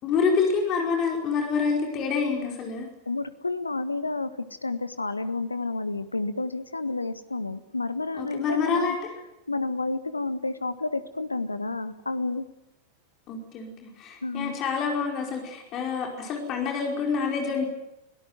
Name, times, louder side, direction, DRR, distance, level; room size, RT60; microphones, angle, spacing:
voice 1, 0.0-2.9 8.2-9.0 13.3-17.7, left 5 dB, 35° left, 2 dB, 5.0 m, -27 dB
voice 2, 3.1-9.0 9.5-12.4 14.2-14.5, left 3 dB, 80° left, 13 dB, 1.5 m, -30 dB
24.0 x 18.0 x 9.4 m, 0.88 s
figure-of-eight pair, 90°, 0 cm